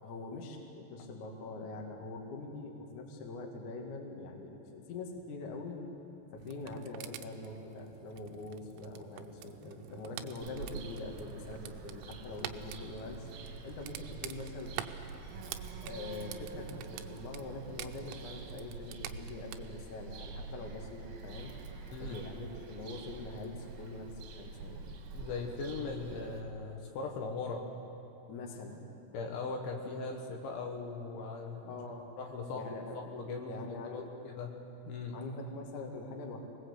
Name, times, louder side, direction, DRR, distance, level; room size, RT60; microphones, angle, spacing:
voice 1, 0.0-5.8 6.3-13.3 13.6-14.8 15.8-21.5 22.0-24.8 28.3-28.8 31.7-32.1 32.5-33.0 33.5-34.1 35.1-36.4, left 3 dB, 50° left, 1 dB, 3.0 m, -44 dB
sound 1, 6.4-19.6, right 11 dB, 85° right, 3.5 m, -47 dB
Bird vocalization bird call bird song, 10.4-26.4, right 4 dB, 65° right, 3.4 m, -46 dB
voice 2, 25.1-27.7 29.1-31.8 32.2-32.6 33.1-33.6 33.9-34.5 34.9-35.2, left 4 dB, 70° left, 1 dB, 3.6 m, -39 dB
25.5 x 19.5 x 8.2 m, 2.9 s
omnidirectional pair, 5.8 m